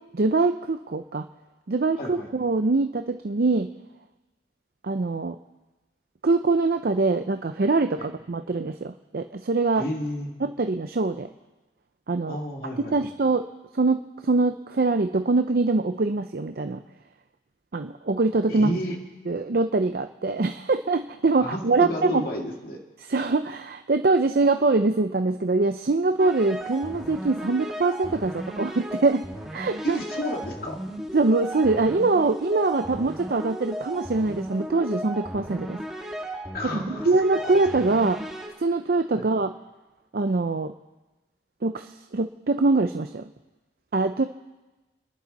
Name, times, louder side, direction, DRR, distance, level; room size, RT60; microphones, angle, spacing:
voice 1, 0.1-1.2 1.7-3.7 4.8-5.4 6.2-9.8 10.4-11.3 12.1-12.4 12.9-13.5 13.7-16.8 17.7-18.7 19.3-22.2 23.1-29.2 29.5-30.0 31.1-35.8 36.6-38.2 38.6-39.5 40.1-40.7 41.6-43.2 43.9-44.2, right 3 dB, 55° right, 8 dB, 0.5 m, -23 dB
voice 2, 2.0-2.3 8.0-8.1 9.8-10.3 12.3-13.1 18.5-18.9 21.4-22.8 29.8-30.8 36.5-37.1 37.4-37.5 39.1-39.3, left 1 dB, 55° left, 0 dB, 2.4 m, -31 dB
sound 1, 26.2-38.5, right 1 dB, 5° right, 1.9 m, -36 dB
29.5 x 11.0 x 4.1 m, 1.1 s
head